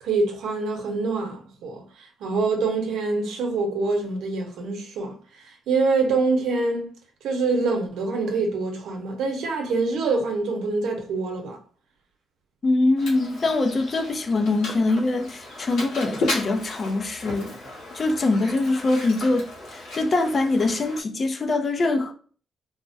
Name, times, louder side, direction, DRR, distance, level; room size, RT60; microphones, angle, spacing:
voice 1, 0.0-6.9 7.2-11.6, right 3 dB, 85° right, 0.8 m, -25 dB
voice 2, 12.6-17.5 17.9-22.1, left 2 dB, 45° left, 0.6 m, -23 dB
Mechanisms, 13.0-21.0, left 2 dB, 85° left, 1.1 m, -35 dB
3.3 x 2.1 x 2.6 m
cardioid pair, 75°, 0 cm